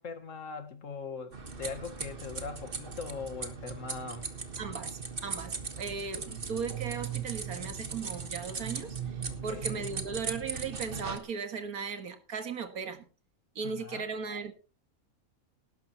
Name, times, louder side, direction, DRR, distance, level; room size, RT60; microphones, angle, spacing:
voice 1, 0.0-4.3 9.3-9.9 13.7-14.0, left 5 dB, 60° left, 1.8 m, -41 dB
sound 1, 1.3-11.2, right 5 dB, 40° right, 1.6 m, -38 dB
voice 2, 4.6-13.1 13.6-14.5, right 5 dB, 85° right, 2.1 m, -37 dB
18.5 x 11.0 x 3.0 m
omnidirectional pair, 1.5 m